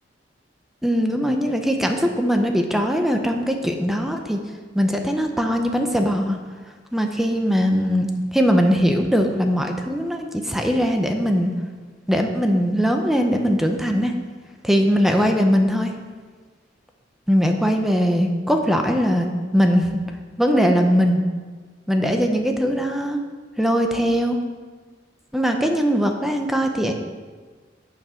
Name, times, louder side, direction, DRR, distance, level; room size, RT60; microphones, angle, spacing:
voice 1, 0.8-4.4 4.7-6.4 6.9-11.5 12.1-14.1 14.6-15.9 17.3-19.9 20.4-21.2 21.9-23.2 23.6-24.4 25.3-26.9, equal, ahead, 3 dB, 0.7 m, -20 dB
9.7 x 6.0 x 5.7 m, 1.5 s
head